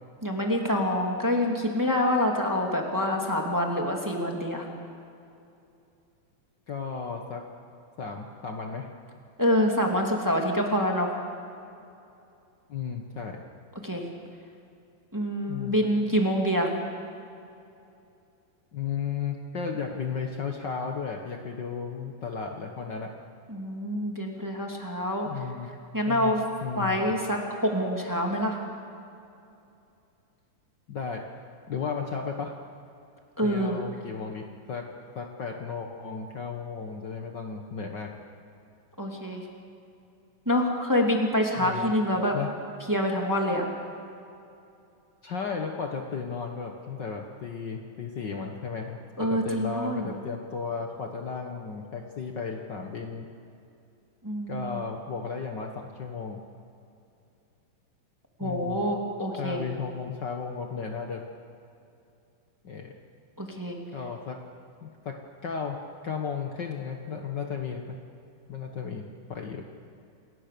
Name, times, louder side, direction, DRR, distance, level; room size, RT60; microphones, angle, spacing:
voice 1, 0.2-4.7 9.4-11.1 13.8-14.1 15.1-16.7 23.5-25.3 25.9-26.4 26.8-28.6 33.4-33.8 39.0-39.5 40.5-42.3 42.9-43.6 49.2-50.2 54.2-54.8 58.4-59.6 63.4-63.8, equal, 5° right, 0 dB, 2.0 m, -26 dB
voice 2, 6.7-7.5 8.0-8.9 12.7-13.4 15.5-15.8 18.7-23.2 25.2-25.7 26.1-26.3 26.6-27.0 30.9-31.3 31.7-32.6 33.4-38.2 41.6-41.9 42.3-42.5 45.2-53.3 54.5-56.4 58.4-58.8 59.4-61.3 62.6-63.0 63.9-64.5 64.8-68.0 68.5-69.7, left 5 dB, 85° left, 3 dB, 0.9 m, -34 dB
28.5 x 18.5 x 6.8 m, 2.6 s
omnidirectional pair, 4.1 m